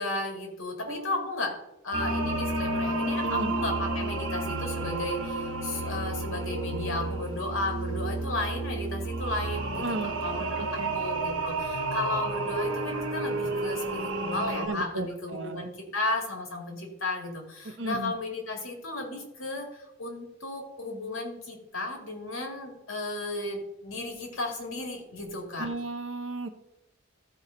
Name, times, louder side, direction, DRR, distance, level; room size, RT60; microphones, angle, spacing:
voice 1, 0.0-1.5 1.8-25.7, left 2 dB, 85° left, 2 dB, 2.2 m, -34 dB
voice 2, 0.9-1.3 3.2-3.5 9.7-10.1 10.6-11.0 14.6-15.7 17.6-18.1 25.6-26.5, right 2 dB, 65° right, 8 dB, 0.9 m, -34 dB
sound 1, 1.9-14.7, right 2 dB, 85° right, 1.4 m, -31 dB
14.0 x 4.8 x 3.9 m, 0.88 s
head